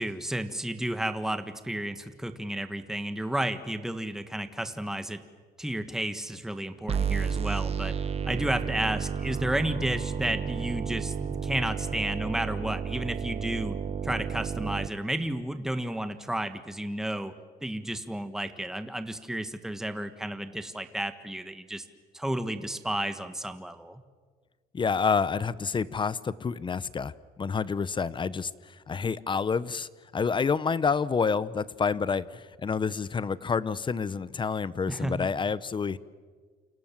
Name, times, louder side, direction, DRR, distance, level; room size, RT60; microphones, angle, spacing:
voice 1, 0.0-5.2 5.6-7.9 8.2-13.8 14.0-17.3 17.6-21.8 22.1-24.0 34.9-35.3, right 1 dB, 5° right, 9 dB, 1.6 m, -32 dB
sound 1, 6.9-14.9, right 7 dB, 35° right, 1.4 m, -31 dB
voice 2, 24.7-36.0, left 5 dB, 30° left, 18 dB, 0.9 m, -28 dB
29.0 x 27.0 x 7.5 m, 1.5 s
cardioid pair, 110°, 17 cm